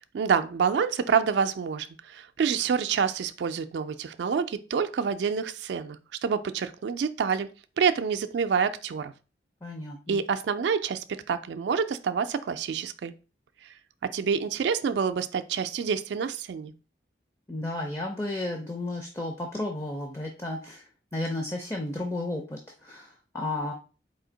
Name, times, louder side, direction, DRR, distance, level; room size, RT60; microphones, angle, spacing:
voice 1, 0.1-7.5 7.8-9.1 10.1-13.1 14.0-16.7, right 6 dB, 80° right, 0.3 m, -27 dB
voice 2, 9.6-10.2 17.5-20.8 21.1-23.7, left 2 dB, 15° left, 0.5 m, -33 dB
4.3 x 2.8 x 3.8 m
head